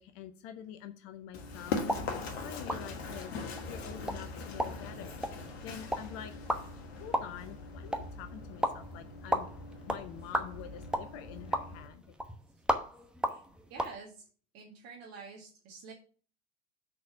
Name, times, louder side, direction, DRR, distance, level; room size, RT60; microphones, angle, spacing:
voice 1, 0.0-1.8 2.4-6.4 7.0-9.5 9.9-12.0, left 10 dB, 45° left, 10 dB, 0.7 m, -47 dB
Run, 1.3-11.9, left 4 dB, 65° left, 1.5 m, -41 dB
sound 1, 1.8-13.9, equal, 5° right, 0.9 m, -37 dB
voice 2, 13.7-14.3 14.5-15.9, right 4 dB, 45° right, -1 dB, 1.9 m, -48 dB
6.5 x 4.2 x 5.9 m, 0.40 s
figure-of-eight pair, 85°, 34 cm